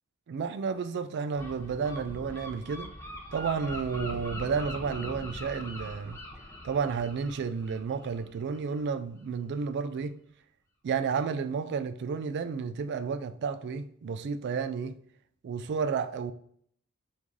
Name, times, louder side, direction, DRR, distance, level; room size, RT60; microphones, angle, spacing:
voice 1, 0.3-2.9 3.3-6.2 6.6-10.2 10.8-15.0 15.4-16.3, right 5 dB, 50° right, 0.3 m, -31 dB
Gull seagull, 1.3-8.8, left 1 dB, 10° left, 0.6 m, -42 dB
3.1 x 2.7 x 3.5 m
head